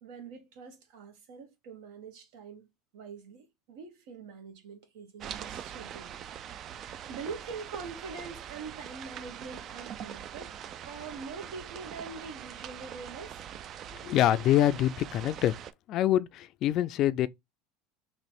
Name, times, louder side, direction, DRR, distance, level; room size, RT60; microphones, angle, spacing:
voice 1, 0.0-2.7 2.9-6.2 7.1-10.6 10.9-13.4, right 5 dB, 75° right, 1.3 m, -44 dB
sound 1, 5.2-15.7, right 9 dB, 40° right, 0.3 m, -43 dB
voice 2, 14.0-15.5 15.9-17.3, left 12 dB, 45° left, 0.3 m, -25 dB
3.1 x 3.0 x 4.2 m
supercardioid pair, 130°, 0 cm